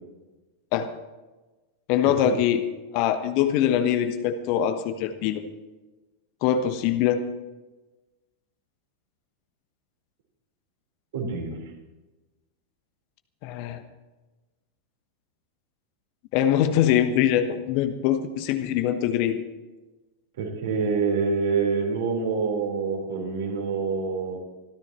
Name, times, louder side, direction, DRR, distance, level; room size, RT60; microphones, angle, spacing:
voice 1, 1.9-2.6 2.9-5.4 6.4-7.2 13.4-13.8 16.3-19.4, left 10 dB, 45° left, 8 dB, 1.1 m, -23 dB
voice 2, 11.1-11.6 20.4-24.4, right 5 dB, 60° right, 0 dB, 4.4 m, -26 dB
26.0 x 13.5 x 3.1 m, 1.2 s
figure-of-eight pair, 90°, 0 cm